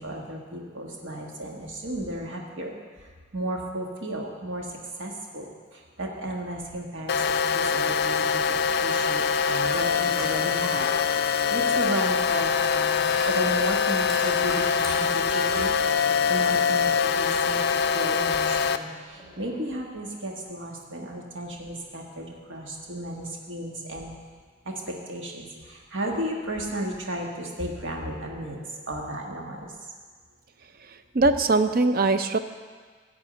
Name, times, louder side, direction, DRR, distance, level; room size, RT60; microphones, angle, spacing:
voice 1, 0.0-3.1 3.3-10.9 11.2-15.7 16.3-24.1 24.6-29.7, right 1 dB, 70° right, 0 dB, 1.5 m, -34 dB
sound 1, 7.1-18.8, left 6 dB, 55° left, 0.4 m, -24 dB
sound 2, 9.5-10.4 10.8-16.9 17.3-17.4 18.3-19.8, left 1 dB, ahead, 3.6 m, -41 dB
voice 2, 31.1-32.4, right 3 dB, 45° right, 10 dB, 0.5 m, -21 dB
13.5 x 4.8 x 8.8 m, 1.6 s
head